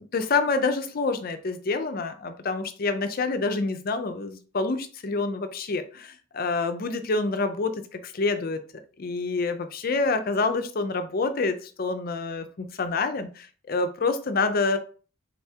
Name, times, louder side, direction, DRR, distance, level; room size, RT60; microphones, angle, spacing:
voice 1, 0.0-8.6 9.0-14.8, left 3 dB, 45° left, 9 dB, 0.5 m, -27 dB
4.0 x 3.4 x 2.8 m, 0.39 s
head